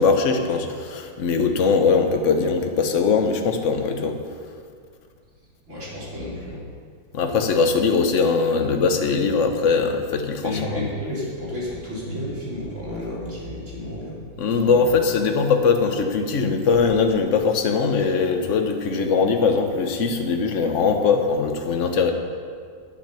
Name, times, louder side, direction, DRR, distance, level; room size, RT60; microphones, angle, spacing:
voice 1, 0.0-4.1 7.1-10.8 14.4-22.1, left 5 dB, 50° left, 4 dB, 1.2 m, -21 dB
voice 2, 5.7-6.6 10.4-14.2 14.7-14.8, left 1 dB, 40° right, -7 dB, 3.7 m, -31 dB
10.5 x 9.1 x 6.9 m, 2.1 s
omnidirectional pair, 2.0 m